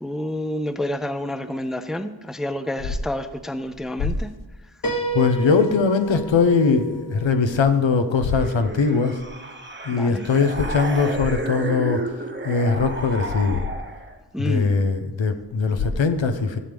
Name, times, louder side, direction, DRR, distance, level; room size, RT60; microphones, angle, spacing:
voice 1, 0.0-4.3 9.9-10.3 14.3-14.7, left 1 dB, ahead, 10 dB, 0.5 m, -29 dB
Piano, 4.8-8.6, right 3 dB, 50° left, 1.3 m, -32 dB
voice 2, 5.1-9.2 9.8-12.1 12.4-13.7 14.4-16.6, left 4 dB, 85° left, 8 dB, 0.8 m, -21 dB
sound 1, 8.3-14.2, right 2 dB, 25° right, 0.9 m, -32 dB
15.0 x 7.5 x 3.5 m, 1.3 s
wide cardioid pair, 75°, 45 cm